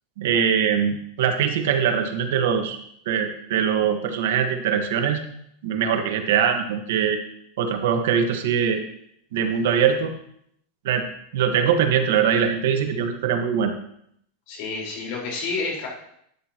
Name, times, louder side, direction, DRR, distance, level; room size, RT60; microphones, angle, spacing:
voice 1, 0.2-2.8 3.0-5.2 5.6-7.2 7.6-8.8 9.3-10.1 10.8-11.0 11.3-13.7, right 7 dB, 75° right, 5 dB, 1.5 m, -22 dB
voice 2, 14.5-15.9, left 4 dB, 60° left, -2 dB, 4.6 m, -29 dB
12.0 x 9.7 x 3.0 m, 0.71 s
supercardioid pair, 135°, 0 cm